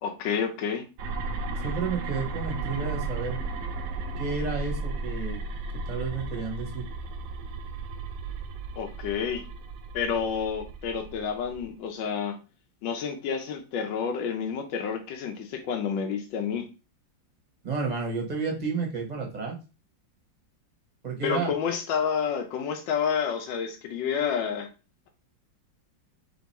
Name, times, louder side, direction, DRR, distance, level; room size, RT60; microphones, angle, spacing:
voice 1, 0.0-0.8 8.8-9.4 9.9-12.4 12.8-16.7 21.2-24.7, left 7 dB, 80° left, 3 dB, 1.4 m, -29 dB
sound 1, 1.0-11.7, right 3 dB, 70° right, 1.1 m, -35 dB
voice 2, 1.6-3.4 4.2-5.4 5.9-6.8 17.6-19.6 21.0-21.5, right 4 dB, 25° right, 1 dB, 1.0 m, -31 dB
3.5 x 3.0 x 4.0 m, 0.31 s
omnidirectional pair, 2.0 m